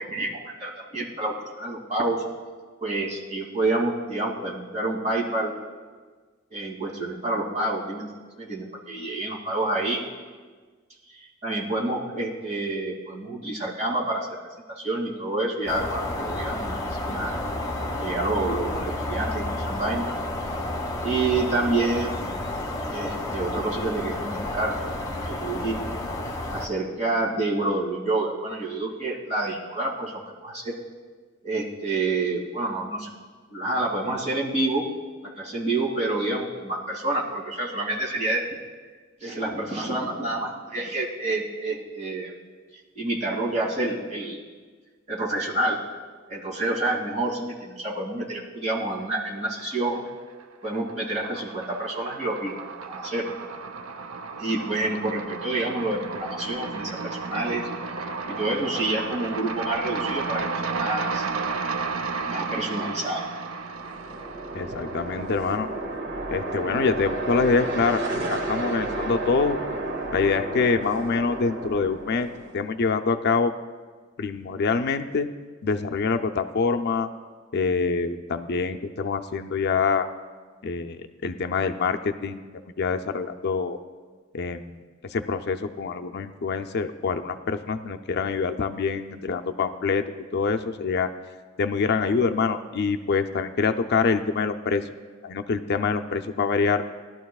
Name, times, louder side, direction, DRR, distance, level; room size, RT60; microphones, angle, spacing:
voice 1, 0.0-2.2 2.8-5.5 6.5-8.1 8.4-10.0 11.1-14.3 14.7-16.8 17.0-17.3 18.0-20.1 21.0-22.2 22.9-24.7 25.3-26.0 26.5-30.7 31.4-33.1 33.5-34.8 35.4-38.4 39.2-42.3 42.9-44.4 45.1-45.8 46.3-50.0 50.6-53.3 54.4-57.6 58.0-61.3 62.3-63.2, right 2 dB, 35° right, -4 dB, 2.6 m, -28 dB
sound 1, 15.7-26.7, left 2 dB, 20° left, 1.3 m, -31 dB
sound 2, 49.4-50.1 50.4-65.6, right 4 dB, 85° right, 0.6 m, -33 dB
sound 3, 63.6-72.7, right 2 dB, 60° right, 2.0 m, -32 dB
voice 2, 64.5-65.7 66.3-68.0 68.3-69.6 70.1-72.3 72.5-73.5 74.2-75.3 75.6-77.1 77.5-80.1 80.6-82.4 82.8-83.8 84.3-91.1 91.6-94.8 95.2-96.8, left 4 dB, 55° left, 7 dB, 0.5 m, -25 dB
19.0 x 12.0 x 2.4 m, 1.4 s
head